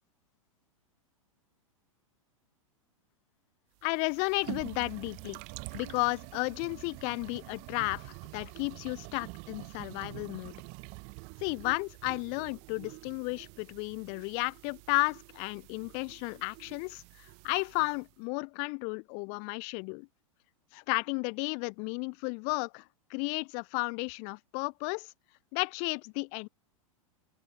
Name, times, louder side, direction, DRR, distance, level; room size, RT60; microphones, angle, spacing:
voice 1, 3.8-5.4 5.7-10.6 11.4-20.1 20.7-22.8 23.1-25.1 25.5-26.5, left 40 dB or more, 40° left, 0.8 m, -33 dB
sound 1, 3.8-18.1, right 38 dB, 40° right, 0.6 m, -47 dB
open air
figure-of-eight pair, 95°, 18 cm